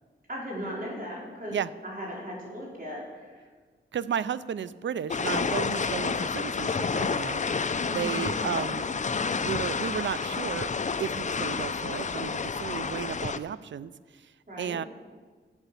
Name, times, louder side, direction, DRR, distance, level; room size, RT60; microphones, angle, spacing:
voice 1, 0.3-1.6 1.8-3.4 7.8-8.3 14.5-14.8, equal, 45° right, -4 dB, 4.6 m, -37 dB
voice 2, 3.9-8.9 9.4-10.7 11.0-13.9 14.2-14.3 14.6-14.8, right 8 dB, 65° right, 17 dB, 0.5 m, -33 dB
sound 1, 5.1-13.4, left 5 dB, 35° left, 0.5 m, -29 dB
11.5 x 8.0 x 7.0 m, 1.5 s
wide cardioid pair, 80°, 21 cm